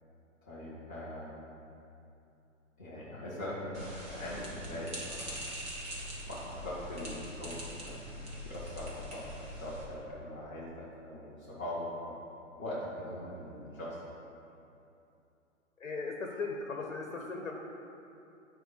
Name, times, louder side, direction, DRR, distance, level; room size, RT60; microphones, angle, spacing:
voice 1, 0.4-1.3 2.8-5.5 6.2-12.2 12.6-14.0, left 1 dB, 10° left, -12 dB, 0.3 m, -41 dB
sound 1, 3.7-9.8, equal, 15° right, 1.6 m, -43 dB
voice 2, 15.8-17.5, left 4 dB, 70° left, 2 dB, 0.9 m, -37 dB
9.1 x 4.5 x 5.3 m, 2.8 s
figure-of-eight pair, 115°, 39 cm